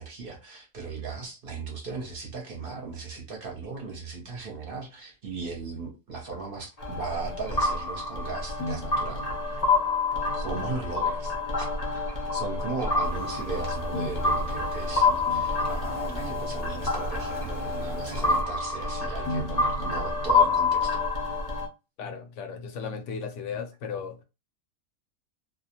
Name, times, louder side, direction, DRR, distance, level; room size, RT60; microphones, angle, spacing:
voice 1, 0.0-9.7 10.3-12.0 12.3-21.1, right 4 dB, 50° right, 0.8 m, -37 dB
sound 1, 6.8-21.7, left 3 dB, 45° left, 0.5 m, -27 dB
sound 2, 13.0-18.4, right 2 dB, 20° right, 0.5 m, -42 dB
voice 2, 22.0-24.2, left 6 dB, 65° left, 0.9 m, -36 dB
2.4 x 2.1 x 2.8 m
omnidirectional pair, 1.5 m